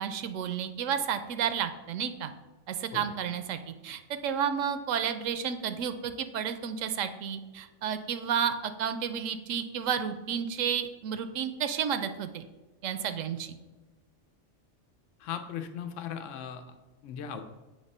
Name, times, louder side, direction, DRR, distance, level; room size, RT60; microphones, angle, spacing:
voice 1, 0.0-2.3 2.7-12.4 12.8-13.5, right 8 dB, 85° right, 10 dB, 0.9 m, -31 dB
voice 2, 15.2-16.6 17.0-17.4, left 8 dB, 80° left, 7 dB, 1.0 m, -37 dB
7.2 x 3.2 x 5.4 m, 1.2 s
omnidirectional pair, 1.3 m